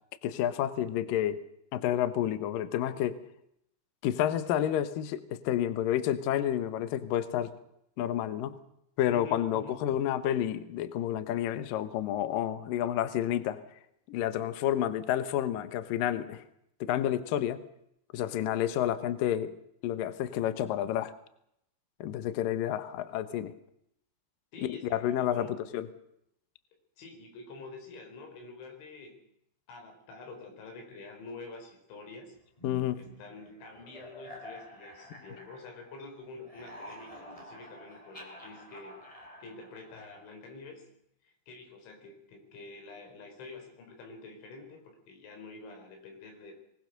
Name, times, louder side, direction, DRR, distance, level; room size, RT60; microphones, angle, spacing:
voice 1, 0.2-1.4 1.7-3.2 4.0-7.5 8.0-8.6 9.0-13.6 14.1-16.4 16.8-17.6 18.1-21.1 22.0-23.5 24.7-25.5 25.7-25.9 32.6-33.0, left 11 dB, 85° left, 13 dB, 1.9 m, -30 dB
voice 2, 9.1-9.8 24.5-25.6 27.0-29.2 29.7-32.4 33.0-39.0 39.4-40.9 41.3-46.5, left 3 dB, 65° left, 3 dB, 6.8 m, -47 dB
sound 1, 32.6-36.1 36.3-40.4, equal, 10° left, 3.2 m, -49 dB
23.5 x 19.0 x 6.7 m, 0.76 s
omnidirectional pair, 5.8 m